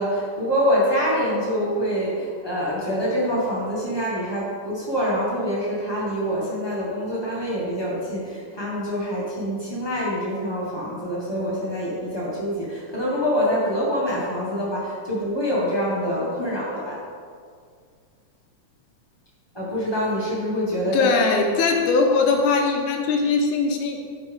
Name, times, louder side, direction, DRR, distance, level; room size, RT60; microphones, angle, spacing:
voice 1, 0.0-17.0 19.5-21.1, equal, 20° left, -7 dB, 0.6 m, -25 dB
voice 2, 20.9-24.0, left 4 dB, 80° left, 2 dB, 2.2 m, -20 dB
12.0 x 5.3 x 3.6 m, 2.1 s
omnidirectional pair, 3.7 m